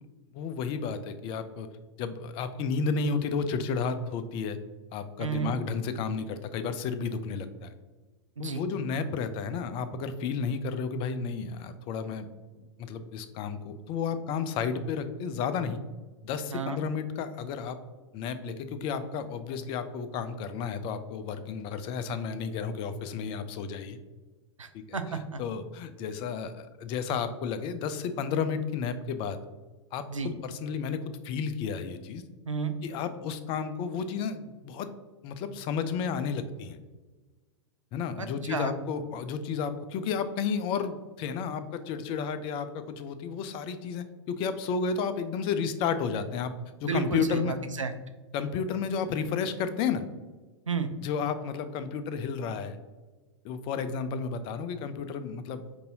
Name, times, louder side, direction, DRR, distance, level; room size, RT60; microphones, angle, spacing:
voice 1, 0.3-1.7 2.0-4.6 4.9-7.7 8.4-12.3 12.6-15.8 16.2-17.8 18.1-24.0 25.4-29.4 29.9-31.0 31.2-32.2 32.8-34.9 35.2-36.8 37.9-46.5 46.8-47.6 48.3-50.1 51.0-52.8 53.4-55.8, left 6 dB, 35° left, 11 dB, 0.4 m, -32 dB
voice 2, 5.2-5.5 8.4-8.6 16.5-16.8 24.6-25.4 30.1-30.3 32.5-32.7 38.2-38.7 46.8-47.9 50.7-50.9, right 5 dB, 85° right, 7 dB, 0.4 m, -32 dB
5.3 x 2.6 x 2.7 m, 1.3 s
figure-of-eight pair, 95°, 16 cm